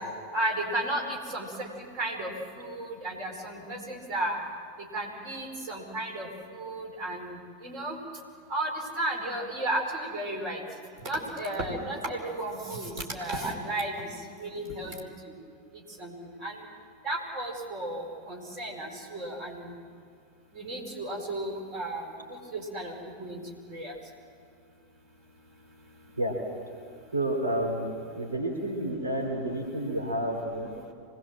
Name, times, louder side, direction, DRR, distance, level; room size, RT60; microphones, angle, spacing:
voice 1, 0.3-2.3 2.6-4.4 4.8-8.0 8.5-8.7 9.0-10.6 11.0-15.1 16.0-16.1 16.4-16.6 17.0-19.7 20.5-22.9 23.2-23.4 23.7-23.9, right 1 dB, 35° right, 2 dB, 4.8 m, -34 dB
voice 2, 27.1-30.7, right 1 dB, 75° right, 1 dB, 3.7 m, -30 dB
25.5 x 20.0 x 7.6 m, 2.3 s
figure-of-eight pair, 90°, 0 cm